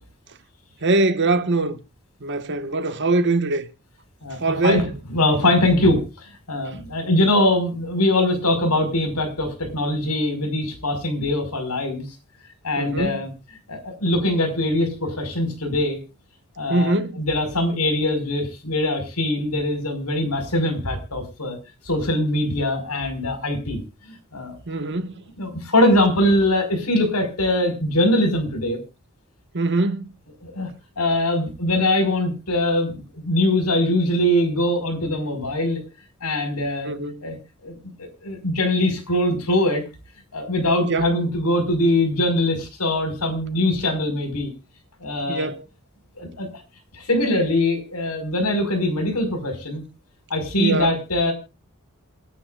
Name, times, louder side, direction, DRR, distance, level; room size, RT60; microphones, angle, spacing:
voice 1, 0.8-1.8 2.2-3.7 4.4-4.9 12.8-13.1 16.7-17.2 24.7-25.2 29.5-30.1 36.8-37.2 40.8-41.1 45.3-45.6 50.6-50.9, right 2 dB, 55° right, 1.5 m, -22 dB
voice 2, 4.2-12.1 12.6-13.3 13.7-16.0 16.6-21.6 21.8-24.6 25.4-28.8 30.4-30.7 31.0-35.8 36.2-36.9 37.2-37.4 37.6-39.8 40.3-44.5 45.0-45.5 46.2-46.6 46.9-49.8 50.3-51.3, left 1 dB, 90° left, 5.3 m, -22 dB
28.0 x 9.9 x 2.5 m
head